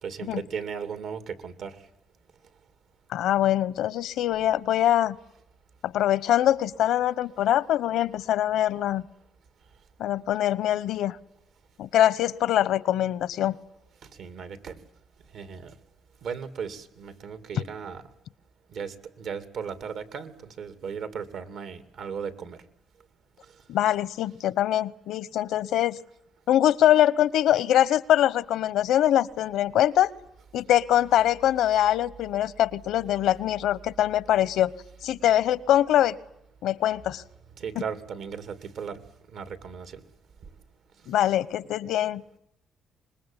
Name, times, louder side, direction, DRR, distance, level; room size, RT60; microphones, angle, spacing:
voice 1, 0.0-1.9 14.0-14.8 15.3-15.8 16.2-18.1 18.7-22.6 23.5-23.6 37.6-39.0 39.3-40.1, right 6 dB, 75° right, 12 dB, 2.6 m, -36 dB
voice 2, 3.1-5.2 5.8-9.0 10.0-11.2 11.8-13.5 23.7-26.0 26.5-30.1 30.5-34.7 35.0-36.2 36.6-37.2 41.1-42.4, left 12 dB, 85° left, 19 dB, 1.0 m, -23 dB
25.5 x 21.0 x 9.1 m, 0.80 s
cardioid pair, 90°, 0 cm